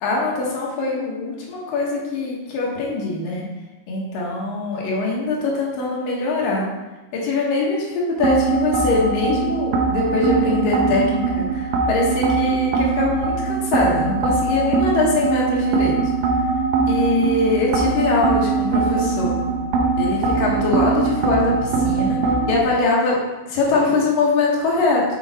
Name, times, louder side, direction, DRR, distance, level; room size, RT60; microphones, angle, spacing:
voice 1, 0.0-3.4 3.9-6.7 7.1-15.9 16.9-19.3 20.0-22.2 22.5-23.2 23.5-25.0, left 3 dB, 60° left, -3 dB, 2.7 m, -22 dB
sound 1, 8.2-22.6, right 4 dB, 90° right, 1.8 m, -21 dB
7.2 x 6.3 x 4.3 m, 1.1 s
omnidirectional pair, 5.1 m